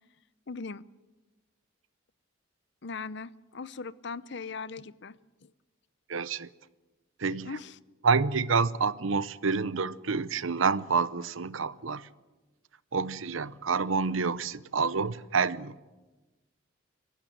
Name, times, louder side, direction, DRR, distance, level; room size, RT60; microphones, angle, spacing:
voice 1, 0.5-0.8 2.8-5.5 7.4-7.8, left 4 dB, 60° left, 0.7 m, -39 dB
voice 2, 6.1-6.5 7.2-7.6 8.0-12.1 12.9-15.7, right 5 dB, 80° right, 0.8 m, -28 dB
24.5 x 15.5 x 9.3 m
head